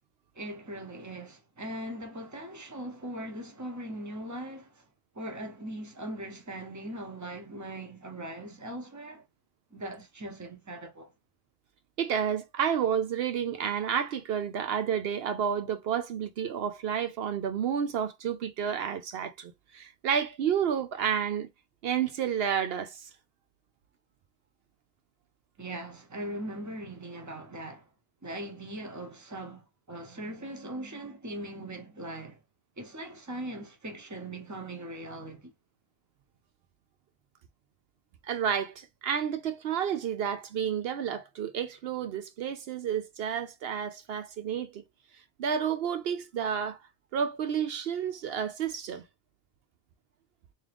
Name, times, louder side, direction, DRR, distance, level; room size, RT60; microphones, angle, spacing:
voice 1, 0.3-4.9 5.1-9.2 9.7-11.1 25.6-27.9 28.2-32.4 32.8-35.5, right 1 dB, 20° right, 0.9 m, -40 dB
voice 2, 12.0-21.5 21.8-23.1 38.2-44.8 45.4-46.8 47.1-49.0, right 8 dB, 75° right, 0.8 m, -30 dB
3.6 x 2.8 x 3.4 m
omnidirectional pair, 1.0 m